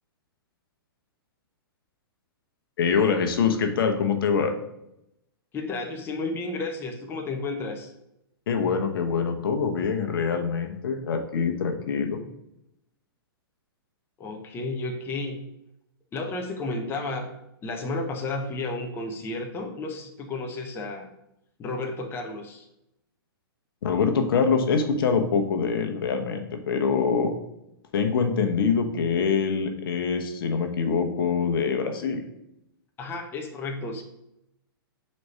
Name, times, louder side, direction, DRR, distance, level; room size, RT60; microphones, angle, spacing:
voice 1, 2.8-4.5 8.5-12.2 23.8-27.3 27.9-32.2, left 5 dB, 65° left, 5 dB, 1.0 m, -24 dB
voice 2, 5.5-7.9 14.2-15.5 16.1-17.3 17.6-21.1 21.6-22.7 33.0-34.0, left 2 dB, 20° left, 3 dB, 0.8 m, -32 dB
4.6 x 4.2 x 5.5 m, 0.83 s
hypercardioid pair, 130°, 13 cm